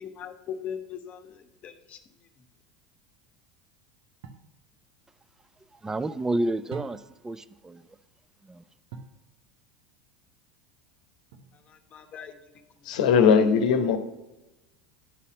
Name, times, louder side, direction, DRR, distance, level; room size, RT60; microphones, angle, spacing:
voice 1, 0.0-2.4 11.5-12.9, left 8 dB, 40° left, 0.9 m, -41 dB
sound 1, 4.2-4.5 6.7-7.3 8.9-9.2 11.3-11.8, right 5 dB, 65° right, 0.8 m, -43 dB
voice 2, 5.8-7.8 8.5-8.6, right 2 dB, 15° right, 0.4 m, -30 dB
voice 3, 12.8-14.0, left 6 dB, 70° left, 0.8 m, -19 dB
9.6 x 4.1 x 5.1 m
hypercardioid pair, 80°, 4 cm